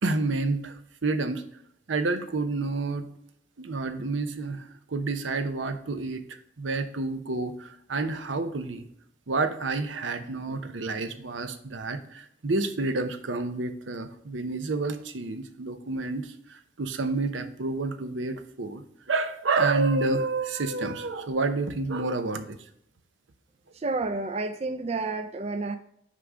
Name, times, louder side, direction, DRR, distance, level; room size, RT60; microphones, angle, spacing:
voice 1, 0.0-1.4 1.9-3.1 3.6-8.9 9.3-22.6, right 3 dB, 85° right, 9 dB, 0.7 m, -29 dB
voice 2, 23.7-25.8, right 3 dB, 35° right, 10 dB, 0.3 m, -30 dB
5.8 x 4.9 x 4.8 m, 0.70 s
head